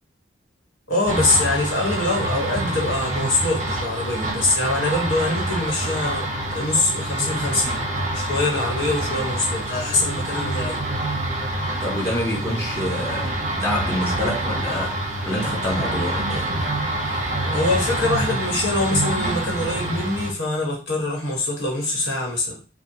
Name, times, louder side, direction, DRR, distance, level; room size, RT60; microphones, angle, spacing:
voice 1, 0.9-7.8 8.1-10.8 17.5-22.6, left 2 dB, 80° left, 1.3 m, -24 dB
sound 1, 1.0-20.3, right 1 dB, 40° right, 0.6 m, -26 dB
voice 2, 11.8-15.0 15.2-16.5, left 1 dB, 15° left, 0.8 m, -27 dB
3.4 x 2.3 x 2.7 m
head